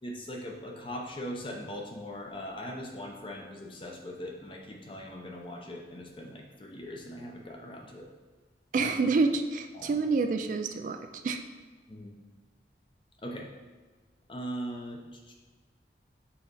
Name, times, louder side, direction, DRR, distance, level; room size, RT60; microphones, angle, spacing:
voice 1, 0.0-8.1 8.7-8.9 9.7-10.0 11.9-12.1 13.2-13.5 14.3-15.3, equal, 30° left, 1 dB, 0.8 m, -40 dB
voice 2, 8.7-11.0 11.2-11.4, right 4 dB, 45° right, 7 dB, 0.3 m, -27 dB
5.7 x 4.2 x 4.1 m, 1.3 s
head